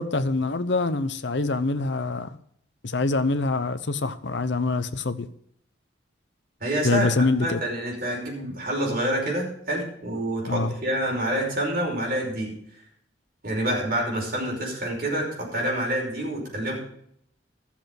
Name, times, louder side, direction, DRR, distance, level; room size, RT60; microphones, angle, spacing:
voice 1, 0.0-2.4 2.8-5.3 6.8-7.6 10.5-10.7, left 3 dB, 70° left, 0.8 m, -25 dB
voice 2, 6.6-7.1 7.4-12.5 13.4-16.8, right 1 dB, 50° right, 5.6 m, -27 dB
13.0 x 7.4 x 6.0 m
head